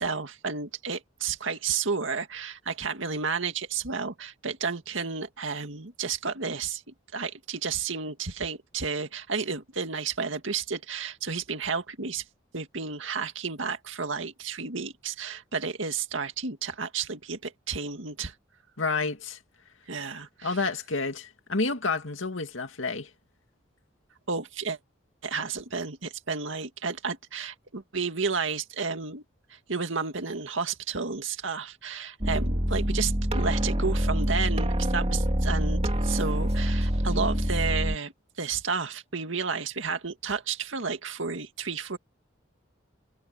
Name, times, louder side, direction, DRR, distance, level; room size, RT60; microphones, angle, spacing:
voice 1, 0.0-6.8 7.1-12.2 12.5-18.3 19.9-20.6 24.3-24.8 25.2-29.2 29.5-42.0, right 5 dB, 75° right, 2.1 m, -32 dB
voice 2, 18.8-19.4 20.4-23.1, left 3 dB, 80° left, 2.3 m, -29 dB
sound 1, 32.2-38.0, equal, 30° right, 2.5 m, -26 dB
head